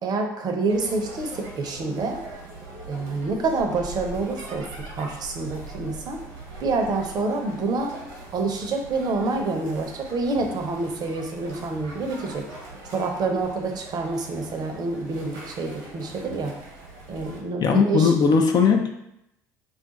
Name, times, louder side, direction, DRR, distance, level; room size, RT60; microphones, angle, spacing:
voice 1, 0.0-2.2 2.9-6.2 6.6-8.0 8.3-12.4 12.9-16.6 17.1-18.1, right 3 dB, 45° right, 3 dB, 0.6 m, -27 dB
sound 1, 0.7-17.4, right 2 dB, 80° right, 0.9 m, -41 dB
voice 2, 17.6-18.9, left 6 dB, 45° left, 3 dB, 0.4 m, -18 dB
2.4 x 2.3 x 3.9 m, 0.81 s
hypercardioid pair, 65°, 9 cm